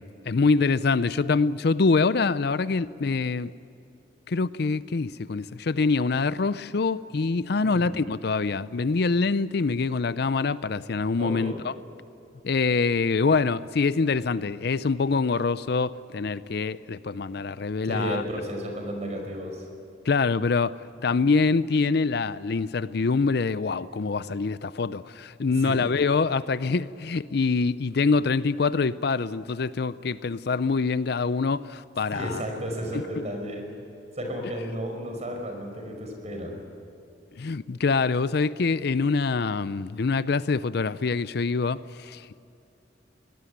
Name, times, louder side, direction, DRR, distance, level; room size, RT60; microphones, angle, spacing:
voice 1, 0.0-3.5 4.3-11.7 12.4-18.2 20.1-32.4 32.9-33.0 37.4-42.4, left 4 dB, 60° left, 0.5 m, -25 dB
voice 2, 7.6-8.1 11.2-11.6 17.8-19.7 25.6-25.7 32.1-33.7 34.2-36.6, equal, 35° right, 5.3 m, -33 dB
23.0 x 19.0 x 9.5 m
head